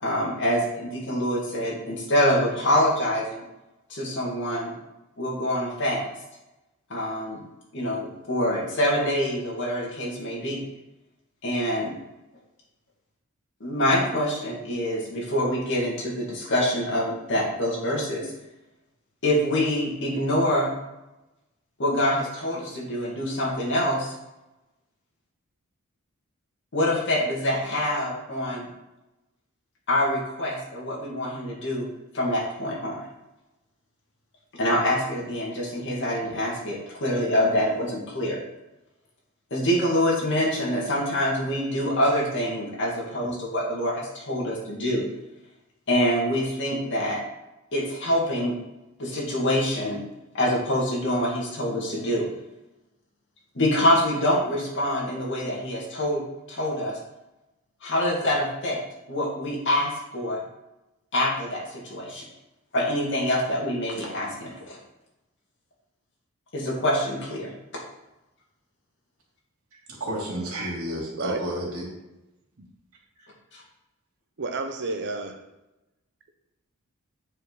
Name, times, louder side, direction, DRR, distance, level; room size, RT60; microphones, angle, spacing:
voice 1, 0.0-3.4 3.9-4.7 5.2-6.0 6.9-7.4 7.7-10.6 11.4-11.9 13.6-18.3 19.2-20.7 21.8-24.1 26.7-28.7 29.9-31.9 32.1-33.0 34.5-38.4 39.5-45.0 45.9-47.2 47.7-48.6 49.0-50.0 50.3-52.3 53.5-56.2 56.5-57.0 57.8-58.8 59.1-60.4 61.1-62.3 62.7-64.8 66.5-67.8, left 1 dB, 60° left, -3 dB, 2.3 m, -25 dB
voice 2, 69.7-71.8 73.2-73.3, equal, 90° right, -4 dB, 2.8 m, -31 dB
voice 3, 71.1-71.4 72.6-72.7 74.4-75.4, right 3 dB, 55° right, 5 dB, 0.9 m, -31 dB
8.8 x 5.0 x 4.1 m, 0.97 s
head